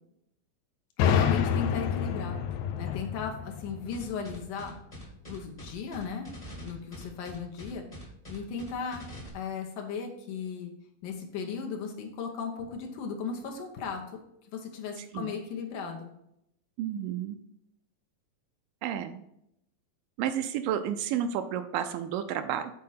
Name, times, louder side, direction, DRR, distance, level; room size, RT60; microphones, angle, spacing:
sound 1, 1.0-4.7, left 8 dB, 90° left, 1.6 m, -28 dB
voice 1, 1.0-2.4 2.8-4.7 5.3-6.3 6.6-7.8 8.3-9.1 9.3-10.7 11.0-14.2 14.5-16.1, left 6 dB, 70° left, 2 dB, 2.4 m, -36 dB
sound 2, 3.9-9.3, equal, 20° left, 1.0 m, -44 dB
voice 2, 15.0-15.3 16.8-17.4 18.8-19.2 20.2-22.7, right 9 dB, 80° right, 9 dB, 2.1 m, -31 dB
7.5 x 4.4 x 5.7 m, 0.79 s
omnidirectional pair, 4.1 m